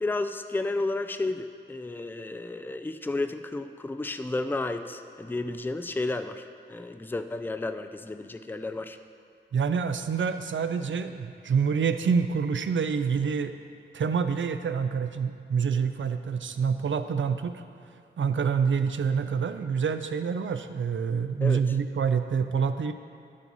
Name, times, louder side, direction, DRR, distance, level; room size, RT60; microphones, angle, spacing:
voice 1, 0.0-9.0 21.4-21.6, left 2 dB, 10° left, 9 dB, 0.4 m, -32 dB
voice 2, 9.5-13.5 13.9-17.6 18.2-22.9, right 6 dB, 75° right, 9 dB, 0.5 m, -27 dB
10.0 x 7.4 x 4.0 m, 2.4 s
wide cardioid pair, 70°, 20 cm